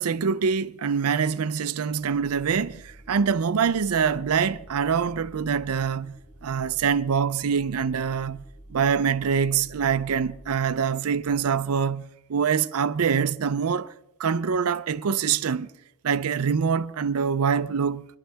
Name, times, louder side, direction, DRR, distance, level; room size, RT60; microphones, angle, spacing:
voice 1, 0.0-13.9 14.2-15.7 16.0-18.1, right 6 dB, 90° right, 0.5 m, -25 dB
sound 1, 1.9-11.5, right 1 dB, 20° left, 2.5 m, -49 dB
24.0 x 11.5 x 3.4 m
head